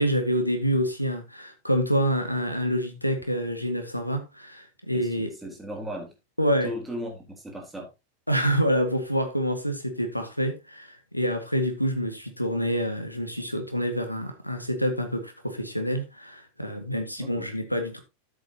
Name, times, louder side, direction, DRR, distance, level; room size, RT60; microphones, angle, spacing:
voice 1, 0.0-5.4 6.4-6.7 8.3-18.0, equal, 90° left, 1.9 m, -27 dB
voice 2, 4.9-6.1 6.6-7.9 17.2-17.5, equal, 5° right, 4.1 m, -37 dB
12.5 x 7.8 x 2.9 m
figure-of-eight pair, 90°, 0 cm